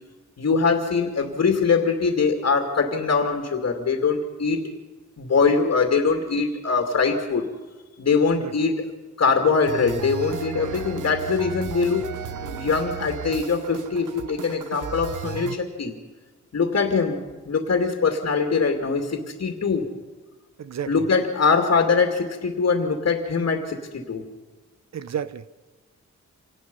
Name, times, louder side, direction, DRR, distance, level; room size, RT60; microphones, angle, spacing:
voice 1, 0.4-4.7 5.2-7.5 8.0-8.8 9.2-12.1 12.4-15.9 16.5-19.9 20.9-24.3, left 5 dB, 55° left, 3 dB, 2.6 m, -22 dB
sound 1, 9.6-15.6, right 7 dB, 85° right, 1.1 m, -34 dB
voice 2, 20.6-20.9 24.9-25.5, right 8 dB, 60° right, 15 dB, 0.9 m, -31 dB
26.0 x 18.5 x 5.5 m, 1.3 s
cardioid pair, 95°, 30 cm